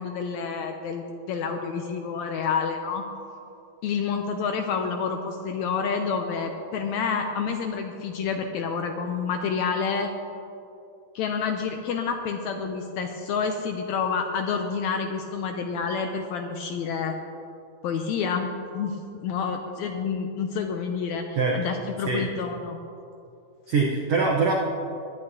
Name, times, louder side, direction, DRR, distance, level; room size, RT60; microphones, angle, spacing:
voice 1, 0.0-3.0 3.8-10.1 11.1-17.2 17.8-22.8, left 5 dB, 80° left, 5 dB, 1.7 m, -29 dB
voice 2, 23.7-24.5, right 4 dB, 65° right, -2 dB, 1.6 m, -23 dB
21.0 x 10.5 x 2.8 m, 2.8 s
omnidirectional pair, 3.8 m